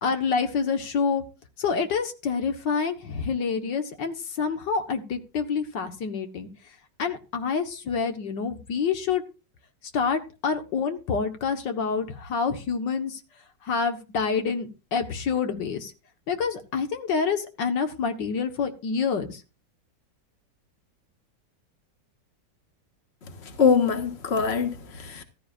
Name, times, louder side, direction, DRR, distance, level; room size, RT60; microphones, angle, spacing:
voice 1, 0.0-1.2 1.6-6.5 7.0-9.2 9.9-13.2 13.6-15.9 16.3-19.4, left 5 dB, 85° left, 2.1 m, -27 dB
voice 2, 23.4-25.2, left 6 dB, 40° left, 1.7 m, -23 dB
14.5 x 13.0 x 2.5 m
omnidirectional pair, 1.9 m